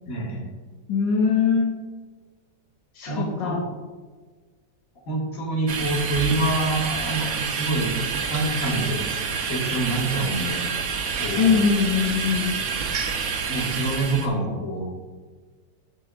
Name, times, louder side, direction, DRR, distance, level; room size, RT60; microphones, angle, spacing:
voice 1, 0.1-0.4 3.1-3.6 5.1-7.9 8.3-10.7 11.2-11.7 13.5-14.8, right 2 dB, 50° left, -2 dB, 2.1 m, -26 dB
voice 2, 0.9-1.7 2.9-3.6 11.4-12.5, left 6 dB, 80° left, 0 dB, 1.6 m, -21 dB
sound 1, 5.7-14.3, right 5 dB, 60° right, 0.8 m, -28 dB
9.4 x 8.6 x 2.4 m, 1.4 s
omnidirectional pair, 2.0 m